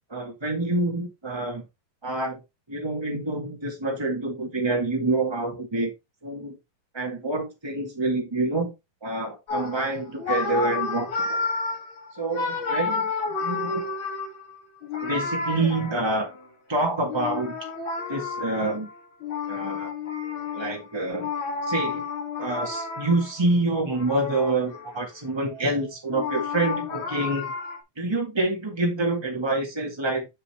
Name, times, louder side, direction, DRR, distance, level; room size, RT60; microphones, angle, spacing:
voice 1, 0.1-1.6 2.0-2.4 2.7-5.9 6.2-6.6 6.9-8.7 9.0-11.1 12.2-13.9 15.0-16.3 16.7-17.6 18.1-18.9 19.5-19.9 20.5-21.3 21.7-22.0 22.4-27.5 28.0-30.3, right 2 dB, 20° right, 1 dB, 0.6 m, -27 dB
sound 1, 9.5-16.5 17.1-23.4 23.9-25.0 25.4-27.8, left 4 dB, 40° left, 2.3 m, -31 dB
7.0 x 6.9 x 3.1 m, 0.22 s
omnidirectional pair, 4.3 m